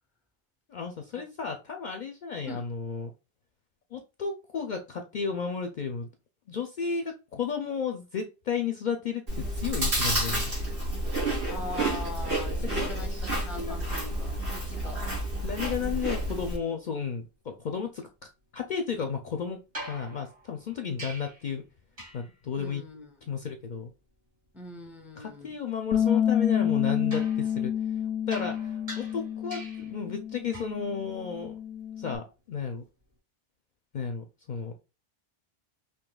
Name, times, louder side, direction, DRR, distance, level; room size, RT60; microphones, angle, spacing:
voice 1, 0.7-3.1 3.9-6.1 6.5-10.5 12.6-13.2 13.6-13.8 15.4-18.1 18.5-19.6 19.9-21.6 22.1-22.8 23.3-23.9 25.2-27.7 28.3-31.5 32.0-32.8 33.9-34.7, left 6 dB, 55° left, 0.6 m, -33 dB
Chewing mastication, 9.3-16.6, right 1 dB, 65° right, 2.7 m, -30 dB
voice 2, 11.3-15.3 22.5-23.4 24.5-25.6, left 2 dB, ahead, 0.6 m, -42 dB
sound 1, 19.7-21.5 22.0-22.4 27.1-30.0 30.5-30.9 32.9-33.0, right 1 dB, 35° right, 2.0 m, -44 dB
Bass guitar, 25.9-32.2, left 9 dB, 85° left, 0.8 m, -29 dB
5.3 x 2.8 x 2.3 m
omnidirectional pair, 1.1 m